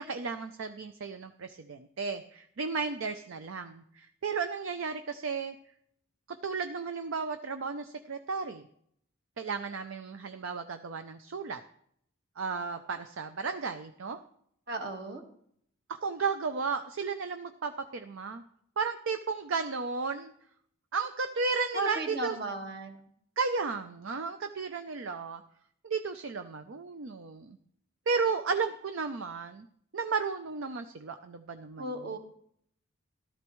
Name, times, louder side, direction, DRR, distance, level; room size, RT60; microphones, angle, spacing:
voice 1, 0.0-5.5 6.3-8.7 9.4-11.6 12.4-14.2 16.0-18.4 18.8-20.3 20.9-22.3 23.4-25.4 25.8-27.6 28.1-29.7 29.9-31.9, right 5 dB, 65° right, 8 dB, 0.5 m, -34 dB
voice 2, 14.7-15.2 21.7-23.0 31.8-32.2, right 2 dB, 45° right, 4 dB, 1.4 m, -35 dB
14.0 x 12.0 x 3.1 m, 0.68 s
head